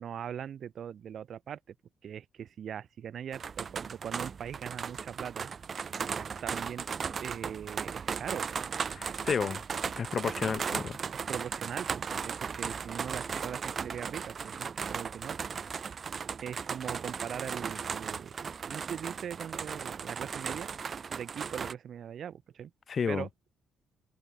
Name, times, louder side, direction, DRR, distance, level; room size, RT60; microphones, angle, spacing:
voice 1, 0.0-1.7 2.0-5.5 6.4-6.9 7.2-8.5 11.1-15.4 16.4-20.7 21.1-22.7 23.1-23.3, right 9 dB, 60° right, 0.9 m, -41 dB
sound 1, 3.3-21.7, right 6 dB, 45° right, 0.4 m, -36 dB
voice 2, 8.9-9.6 10.0-11.0 22.9-23.3, left 6 dB, 45° left, 0.3 m, -31 dB
open air
cardioid pair, 90°, 0 cm